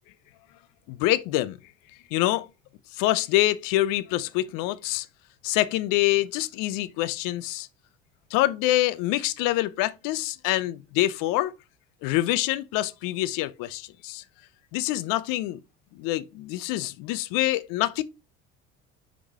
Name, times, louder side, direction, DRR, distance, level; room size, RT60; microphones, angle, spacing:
voice 1, 0.9-1.6 2.1-2.5 2.9-5.1 5.4-7.7 8.3-11.5 12.0-14.2 14.7-15.6 15.9-18.0, left 16 dB, 65° left, 0.7 m, -26 dB
6.4 x 3.8 x 4.7 m
hypercardioid pair, 75°, 36 cm